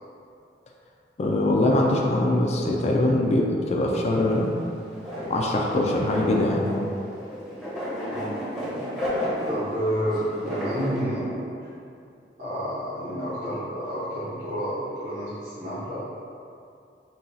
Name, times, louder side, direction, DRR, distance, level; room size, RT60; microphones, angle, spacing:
voice 1, 1.2-4.5 5.3-6.7, left 1 dB, 40° left, -1 dB, 0.4 m, -22 dB
sound 1, 4.1-11.0, equal, 5° right, 0.8 m, -33 dB
voice 2, 8.0-8.4 9.4-11.5 12.4-16.0, equal, 40° right, -16 dB, 1.2 m, -30 dB
3.9 x 2.3 x 4.0 m, 2.5 s
head